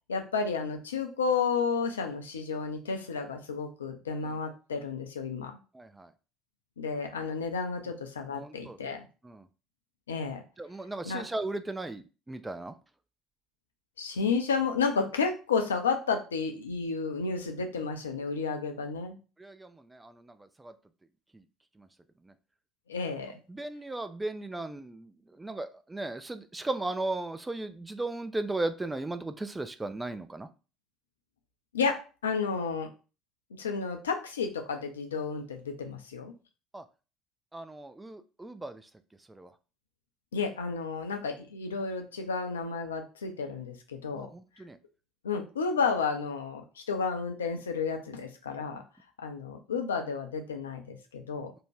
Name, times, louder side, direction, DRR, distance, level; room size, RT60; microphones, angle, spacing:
voice 1, 0.1-5.5 6.8-9.1 10.1-10.4 11.0-11.2 14.0-19.2 22.9-23.4 31.7-32.9 33.6-36.3 40.3-44.3 45.2-48.8 49.2-51.5, left 5 dB, 80° left, 4 dB, 0.4 m, -31 dB
voice 2, 5.7-6.1 8.3-8.8 9.2-9.4 10.6-12.7 19.4-20.1 20.6-20.7 23.5-25.1 25.4-30.5 36.7-36.8 37.5-38.8 39.4-39.5 44.1-44.8, right 2 dB, 15° right, 11 dB, 0.3 m, -36 dB
2.6 x 2.1 x 3.1 m, 0.34 s
figure-of-eight pair, 60°, 0 cm